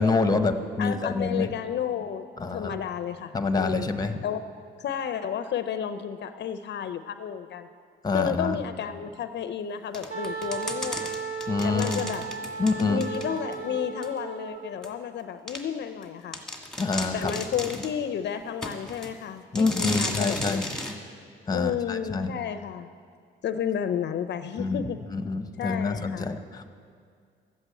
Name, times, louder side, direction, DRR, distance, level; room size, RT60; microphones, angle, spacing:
voice 1, 0.0-1.5 2.4-2.8 3.3-4.2 8.0-8.6 11.5-12.0 12.6-13.0 16.8-17.3 19.5-20.6 21.5-22.3 24.6-24.8 25.1-26.6, left 3 dB, 20° left, 8 dB, 0.9 m, -26 dB
voice 2, 0.8-3.9 4.2-4.4 4.8-7.7 8.1-11.1 11.6-12.2 12.9-16.4 17.1-20.7 21.5-22.9 23.4-25.0 25.6-26.3, left 8 dB, 60° left, 9 dB, 0.6 m, -32 dB
sound 1, 9.9-13.6 14.0-14.1 14.8-14.9 15.5-15.6 16.0-16.1 16.3-18.0 18.6-19.1 19.6-21.0, left 1 dB, ahead, 1.7 m, -35 dB
Wind instrument woodwind instrument, 10.1-14.7, right 6 dB, 60° right, 2.6 m, -35 dB
12.5 x 8.1 x 8.3 m, 2.2 s
cardioid pair, 90°, 20 cm